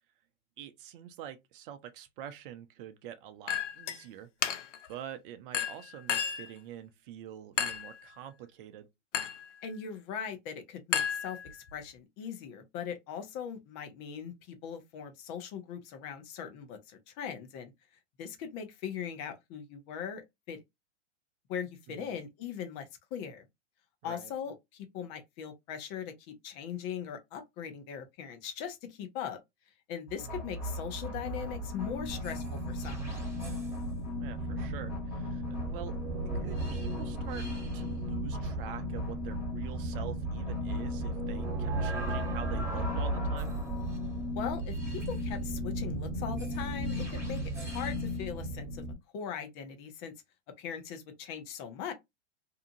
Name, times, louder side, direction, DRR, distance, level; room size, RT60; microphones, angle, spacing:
voice 1, 0.6-4.3 4.9-8.9 21.9-22.2 24.0-24.3 30.2-30.5 34.2-36.0 36.3-37.5 37.7-43.5, right 10 dB, 50° right, 0.6 m, -46 dB
Chink clink, 3.5-4.0 4.4-4.9 5.5-6.5 7.6-8.0 9.1-9.5 10.9-11.7, left 8 dB, 85° left, 0.6 m, -32 dB
voice 2, 9.6-17.7 18.2-20.2 20.5-20.6 21.5-23.4 24.0-29.4 29.9-33.0 44.3-48.8 49.1-50.1 50.6-51.9, left 8 dB, 40° left, 0.8 m, -40 dB
sound 1, 30.1-48.9, equal, 10° right, 1.4 m, -34 dB
2.8 x 2.4 x 2.6 m
hypercardioid pair, 110°, 35 cm